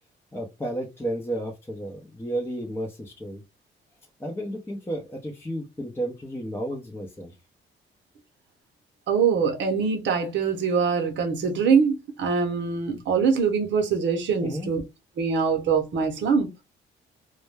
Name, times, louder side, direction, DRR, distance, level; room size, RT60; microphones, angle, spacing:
voice 1, 0.3-3.4 4.2-7.3 14.4-14.7, right 1 dB, 10° left, 0.6 m, -32 dB
voice 2, 9.1-14.8 15.2-16.5, right 6 dB, 70° right, 0.7 m, -23 dB
2.2 x 2.1 x 3.2 m
cardioid pair, 90°, 20 cm